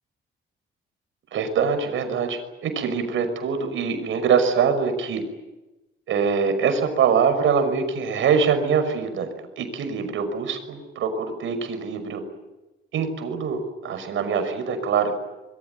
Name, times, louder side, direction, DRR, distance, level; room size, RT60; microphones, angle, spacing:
voice 1, 1.3-5.2 6.1-9.3 9.6-12.2 12.9-15.1, right 6 dB, 75° right, 8 dB, 5.8 m, -23 dB
26.0 x 22.5 x 9.6 m, 1.0 s
wide cardioid pair, 175°, 20 cm